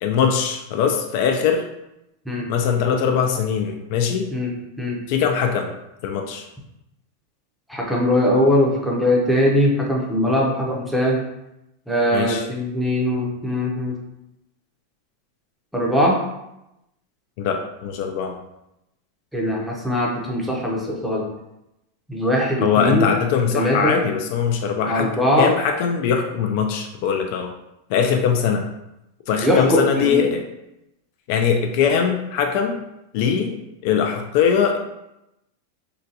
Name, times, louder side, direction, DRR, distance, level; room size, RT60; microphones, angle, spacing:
voice 1, 0.0-1.7 2.5-4.3 5.1-5.7 6.0-6.4 12.1-12.5 17.4-18.3 22.6-25.1 25.4-27.5 27.9-28.7 29.3-30.4 31.3-32.8 33.1-34.8, left 7 dB, 50° left, 4 dB, 0.3 m, -21 dB
voice 2, 7.7-11.2 11.9-13.9 15.7-16.2 19.3-21.3 22.1-23.1 23.5-24.0 24.9-25.5 29.4-30.2, equal, ahead, -3 dB, 0.6 m, -21 dB
3.8 x 2.2 x 2.7 m, 0.88 s
supercardioid pair, 150°, 0 cm